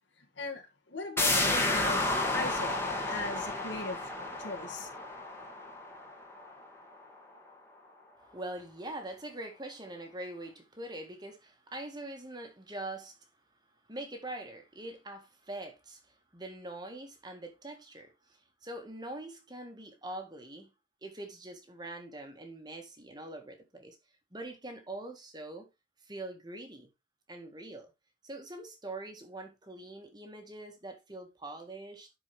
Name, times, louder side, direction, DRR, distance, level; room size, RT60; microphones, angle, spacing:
voice 1, 0.2-2.0 2.3-2.8 3.0-4.0 4.4-4.9, left 2 dB, 90° left, 2.1 m, -38 dB
sound 1, 1.2-6.6 7.0-7.1, left 2 dB, 15° left, 2.2 m, -31 dB
voice 2, 8.2-13.3 13.9-20.7 21.0-24.0 24.3-25.7 26.0-26.9 27.3-27.9 28.2-32.1, right 1 dB, 25° right, 1.7 m, -43 dB
11.5 x 4.9 x 3.3 m
head